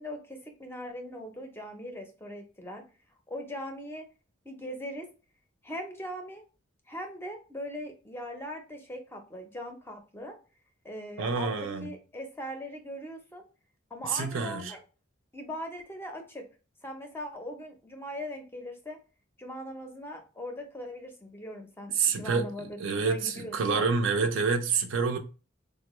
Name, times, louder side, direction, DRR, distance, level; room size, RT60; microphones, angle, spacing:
voice 1, 0.0-2.8 3.3-4.0 4.4-5.1 5.6-6.4 6.9-10.3 10.8-11.5 11.8-13.4 13.9-14.8 15.3-16.5 16.8-19.0 19.4-23.9, equal, 10° left, 0.5 m, -40 dB
voice 2, 11.2-11.9 14.0-14.8 22.0-25.2, right 5 dB, 80° right, 0.5 m, -28 dB
3.6 x 2.1 x 3.0 m
head